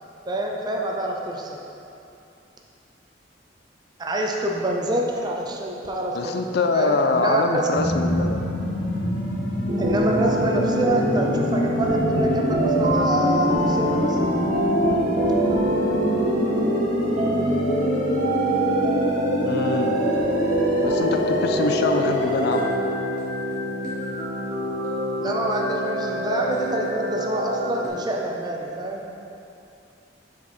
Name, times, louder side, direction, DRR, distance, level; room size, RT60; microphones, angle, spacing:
voice 1, 0.3-1.6 4.0-7.7 9.8-14.2 25.2-29.1, right 1 dB, 25° right, -1 dB, 0.6 m, -26 dB
voice 2, 6.1-8.4 19.4-20.0 20.8-22.6 25.3-25.4, left 4 dB, 60° left, 6 dB, 0.4 m, -24 dB
sound 1, 7.7-22.6, equal, 90° left, 1.4 m, -25 dB
Per Adele, 9.7-27.9, right 1 dB, 45° right, 1.0 m, -26 dB
6.9 x 4.7 x 4.2 m, 2.7 s
head